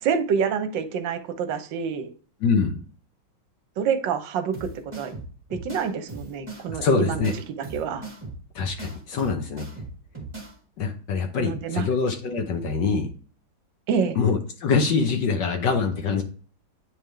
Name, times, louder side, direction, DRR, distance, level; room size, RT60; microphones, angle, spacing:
voice 1, 0.0-2.1 3.8-4.7 4.9-5.1 5.6-7.3 7.6-8.1 11.4-11.9 13.9-14.2, right 6 dB, 70° right, 9 dB, 1.4 m, -27 dB
voice 2, 2.4-2.8 6.8-7.3 8.5-9.6 10.8-13.1 14.2-16.2, left 5 dB, 65° left, 5 dB, 1.3 m, -24 dB
sound 1, 4.5-10.5, right 2 dB, 15° right, 1.2 m, -38 dB
9.0 x 3.6 x 3.3 m, 0.42 s
omnidirectional pair, 2.3 m